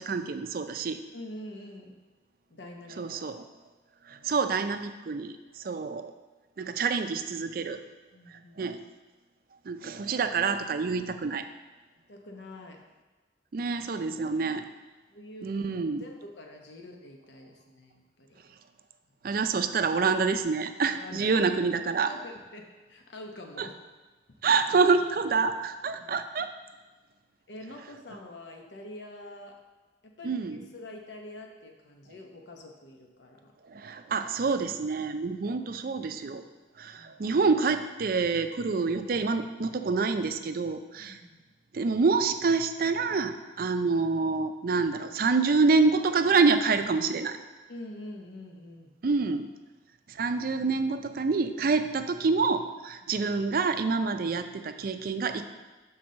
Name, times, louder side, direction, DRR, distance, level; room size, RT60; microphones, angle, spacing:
voice 1, 0.0-1.0 2.9-3.4 4.0-6.1 6.6-7.8 8.3-8.8 9.6-11.5 13.5-14.7 15.4-16.0 19.2-22.1 23.6-23.7 24.4-26.5 30.2-30.6 33.6-36.4 36.8-41.2 41.7-47.4 49.0-49.5 50.1-55.5, right 4 dB, 55° right, 8 dB, 0.4 m, -27 dB
voice 2, 1.1-1.9 2.5-3.0 4.1-4.3 8.1-8.7 12.1-12.8 15.1-18.4 20.9-21.3 22.0-23.8 26.0-26.2 27.5-29.6 30.2-33.5 37.0-37.4 41.0-41.4 47.7-49.0 53.0-53.1, left 1 dB, 80° left, 2 dB, 0.9 m, -45 dB
6.0 x 4.0 x 6.3 m, 1.2 s
head